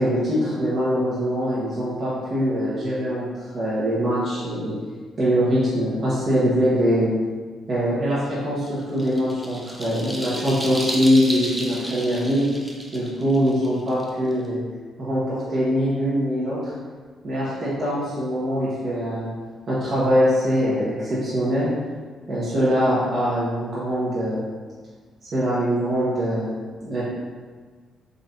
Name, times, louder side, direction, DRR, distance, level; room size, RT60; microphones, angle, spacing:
voice 1, 0.0-4.7 5.2-7.1 7.7-12.4 12.9-14.6 15.0-16.6 17.2-19.3 19.7-21.7 22.3-24.4 25.2-26.5 26.8-27.0, equal, 45° right, -10 dB, 1.0 m, -23 dB
sound 1, 8.7-14.5, right 1 dB, 5° right, 0.6 m, -33 dB
3.8 x 3.2 x 2.6 m, 1.5 s
cardioid pair, 90°, 0 cm